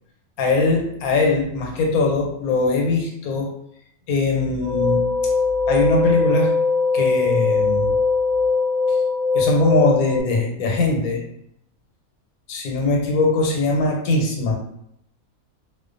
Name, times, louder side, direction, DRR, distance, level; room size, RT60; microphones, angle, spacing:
voice 1, 0.4-3.5 4.1-5.0 5.7-6.5 6.9-7.9 8.9-9.0 9.3-11.2 12.5-14.5, left 2 dB, 85° left, 1 dB, 1.1 m, -21 dB
sound 1, 4.6-10.2, left 4 dB, 5° right, 0.8 m, -20 dB
2.4 x 2.2 x 2.4 m, 0.75 s
omnidirectional pair, 1.5 m